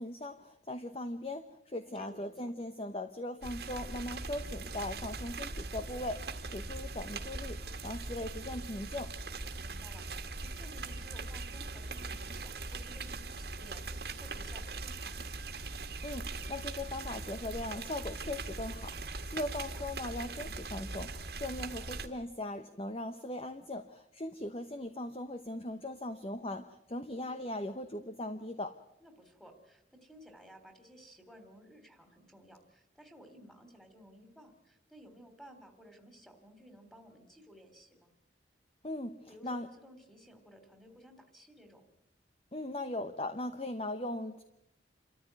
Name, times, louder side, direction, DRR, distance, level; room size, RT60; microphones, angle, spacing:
voice 1, 0.0-9.1 16.0-28.8 38.8-39.7 42.5-44.4, left 1 dB, 30° left, 9 dB, 0.9 m, -39 dB
voice 2, 1.8-2.4 9.6-15.3 19.3-19.9 29.0-38.1 39.3-41.8, equal, ahead, 7 dB, 3.0 m, -56 dB
sound 1, 3.4-22.1, right 3 dB, 60° right, 1.9 m, -41 dB
28.0 x 14.0 x 9.3 m, 0.83 s
head